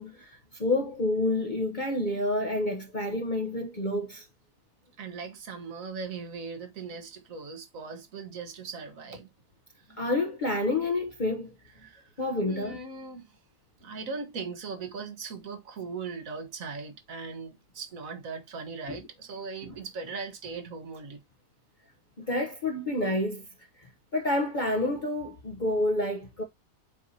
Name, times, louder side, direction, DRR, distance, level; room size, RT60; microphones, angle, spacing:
voice 1, 0.0-4.3 10.0-11.5 12.2-12.8 19.7-19.8 22.2-23.5 23.8-26.4, left 1 dB, 35° left, 0.9 m, -29 dB
voice 2, 5.0-9.3 9.7-10.1 11.8-13.4 13.8-21.2, right 4 dB, 65° right, 1.6 m, -39 dB
7.5 x 4.6 x 2.7 m
omnidirectional pair, 1.6 m